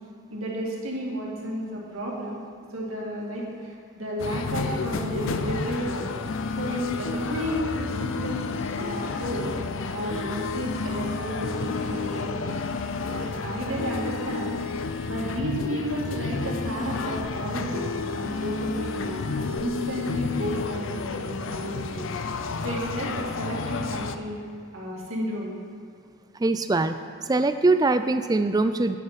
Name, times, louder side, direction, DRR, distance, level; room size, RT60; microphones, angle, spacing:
voice 1, 0.3-2.4 2.7-6.1 6.5-8.4 8.8-9.5 9.9-12.5 13.1-14.6 15.0-22.1 22.6-24.4 24.7-25.5, right 1 dB, 75° right, -3 dB, 2.1 m, -32 dB
sound 1, 4.2-24.2, left 4 dB, 65° left, 0.5 m, -31 dB
voice 2, 26.4-29.0, right 3 dB, 20° right, 10 dB, 0.3 m, -23 dB
9.0 x 7.4 x 5.8 m, 2.2 s
head